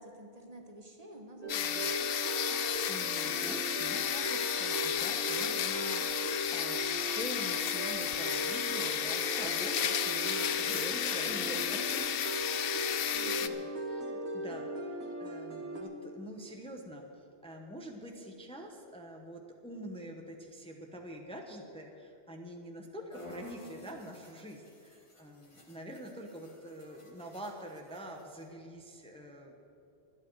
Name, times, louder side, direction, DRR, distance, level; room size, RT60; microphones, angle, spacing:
voice 1, 0.0-1.9 13.1-13.7, right 1 dB, 35° right, 2 dB, 1.5 m, -50 dB
sound 1, 1.4-15.8, right 1 dB, 75° right, 2.1 m, -38 dB
sound 2, 1.5-13.5, left 10 dB, 65° left, 0.8 m, -33 dB
voice 2, 2.4-12.2 13.9-29.5, equal, 5° left, 2 dB, 1.0 m, -45 dB
sound 3, 23.1-28.5, left 1 dB, 30° left, 1.7 m, -55 dB
24.0 x 8.7 x 4.8 m, 2.8 s
omnidirectional pair, 1.1 m